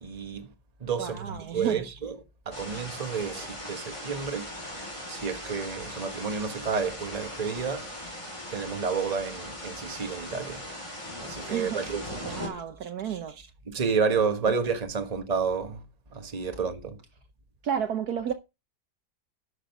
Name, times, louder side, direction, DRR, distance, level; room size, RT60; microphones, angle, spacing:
voice 1, 0.0-0.5 0.8-2.1 2.5-4.5 5.1-7.9 8.5-10.6 11.2-12.0 12.8-13.2 13.7-15.8 16.1-17.0, right 5 dB, 25° right, 1.2 m, -30 dB
voice 2, 1.0-1.8 11.5-11.8 12.3-13.4 17.6-18.3, right 8 dB, 60° right, 1.2 m, -32 dB
sound 1, 2.5-12.5, left 1 dB, 15° left, 3.6 m, -39 dB
10.0 x 6.4 x 5.3 m
omnidirectional pair, 2.0 m